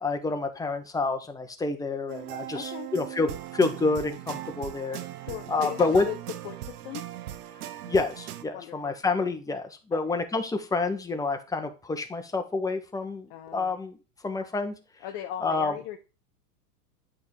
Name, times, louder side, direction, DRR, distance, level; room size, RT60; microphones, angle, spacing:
voice 1, 0.0-5.0 5.5-6.1 7.9-14.0 14.2-14.7 15.4-15.7, left 3 dB, 5° left, 6 dB, 0.9 m, -28 dB
sound 1, 2.1-8.4, right 12 dB, 70° right, 0.9 m, -39 dB
voice 2, 2.5-2.9 5.2-6.2 6.4-7.0 8.5-9.0 9.9-10.0 13.3-13.8 15.0-16.0, left 12 dB, 25° left, 5 dB, 0.3 m, -38 dB
8.7 x 3.7 x 4.7 m, 0.32 s
hypercardioid pair, 110°, 48 cm